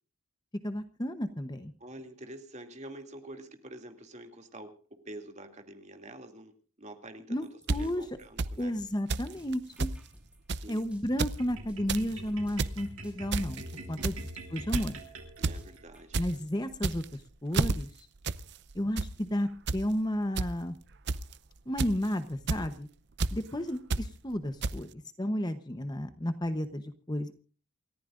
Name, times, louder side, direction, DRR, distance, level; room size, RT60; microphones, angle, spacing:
voice 1, 0.6-1.7 7.3-8.0 8.6-9.9 10.7-13.6 13.9-14.1 14.5-15.0 16.1-18.1 18.7-20.8 21.7-22.9 23.3-27.3, equal, 20° left, 9 dB, 0.9 m, -32 dB
voice 2, 1.8-6.5 6.8-8.7 10.5-10.8 13.7-14.3 15.4-16.2 23.3-23.8, right 1 dB, 30° right, 4 dB, 2.6 m, -47 dB
sound 1, 7.4-16.9, equal, 5° right, 5.0 m, -56 dB
sound 2, 7.7-7.8 8.4-8.5 9.1-9.3 9.5-9.6 9.8-10.0 10.5-10.7 11.1-11.4 11.7-12.0 12.4-12.8 13.3-13.6 14.0-14.3 14.7-15.0 15.4-15.6 15.9-16.3 16.7-17.2 17.5-17.7 18.2-18.4 18.7-19.1 19.7-19.8 20.4-20.5 21.1-21.3 21.8-22.1 22.5-22.6 23.2-23.3 23.9-24.0 24.6-24.7, right 3 dB, 50° right, 0.6 m, -29 dB
sound 3, 11.4-15.9, right 2 dB, 75° right, 5.1 m, -45 dB
28.5 x 14.5 x 2.5 m, 0.39 s
head